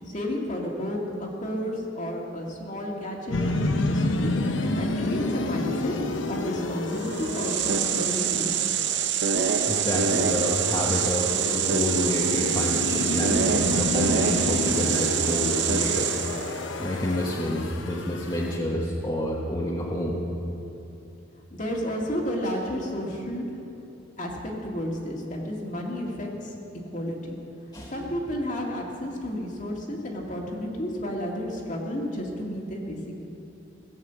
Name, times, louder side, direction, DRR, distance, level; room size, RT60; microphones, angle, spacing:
voice 1, 0.1-8.7 21.5-23.4 24.2-26.5 26.9-27.4 27.9-33.2, equal, 40° left, -1 dB, 2.0 m, -32 dB
sound 1, 3.3-18.6, left 2 dB, 75° left, 0.9 m, -30 dB
sound 2, 7.0-16.6, right 8 dB, 65° right, 0.6 m, -25 dB
voice 2, 9.7-16.1 16.8-20.1 27.7-27.9, left 1 dB, 20° left, -4 dB, 1.2 m, -28 dB
17.0 x 7.3 x 8.1 m, 2.8 s
head